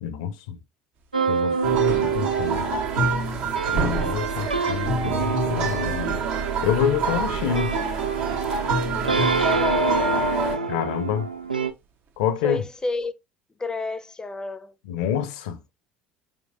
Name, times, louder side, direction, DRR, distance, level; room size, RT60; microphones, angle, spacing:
voice 1, 0.0-0.6 1.3-2.7 3.7-6.2 6.6-7.8 10.7-11.3 12.2-12.6 14.9-15.6, left 9 dB, 65° left, 0.6 m, -27 dB
sound 1, 1.0-13.1, right 6 dB, 45° right, 0.6 m, -37 dB
sound 2, 1.1-11.7, right 4 dB, 90° right, 0.4 m, -28 dB
sound 3, 1.6-10.6, right 5 dB, 65° right, 1.2 m, -26 dB
voice 2, 9.4-10.7 12.4-13.1 13.6-14.7, left 3 dB, 15° left, 0.6 m, -28 dB
4.6 x 3.7 x 2.4 m
figure-of-eight pair, 65°, 5 cm